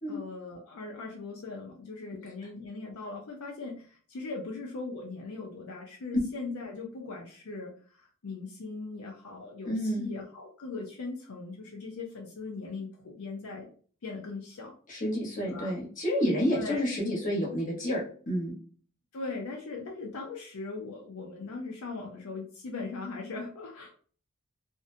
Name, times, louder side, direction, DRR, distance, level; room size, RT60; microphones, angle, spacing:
voice 1, 0.1-7.7 8.0-13.7 14.0-14.7 15.4-15.7 16.5-16.9 19.1-24.0, left 3 dB, 75° left, -1 dB, 0.5 m, -39 dB
voice 2, 9.7-10.1 14.9-18.5, equal, 40° left, -3 dB, 1.1 m, -29 dB
2.6 x 2.1 x 2.6 m, 0.43 s
head